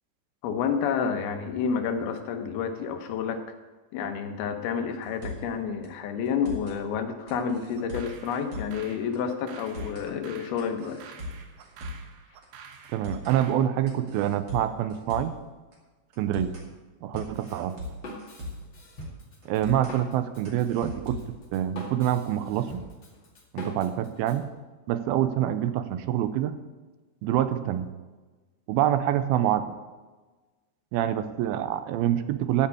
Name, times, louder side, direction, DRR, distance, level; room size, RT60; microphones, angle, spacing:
voice 1, 0.4-3.4 3.9-11.1, left 6 dB, 85° left, 5 dB, 3.0 m, -29 dB
sound 1, 5.0-5.5 5.8-5.9 6.2-6.8 7.3-8.8 9.1-9.2 9.5-10.1 10.6-12.1 12.4-12.5 12.8-13.4 13.9-15.4 15.7-15.8 16.1-16.7 17.2-18.7 19.0-19.1 19.4-20.0 20.4-21.4, left 1 dB, 35° right, 3.1 m, -39 dB
sound 2, 7.8-13.7, right 6 dB, 70° right, 2.2 m, -49 dB
voice 2, 12.9-15.4 16.2-16.5 17.0-17.8 19.5-21.2 21.5-22.8 23.5-24.5 24.9-26.6 27.2-27.9 28.7-29.7 30.9-32.7, right 11 dB, 85° right, 11 dB, 2.5 m, -26 dB
Drum kit, 17.1-24.4, left 1 dB, 35° left, 2.4 m, -42 dB
13.0 x 5.6 x 8.4 m, 1.3 s
omnidirectional pair, 4.3 m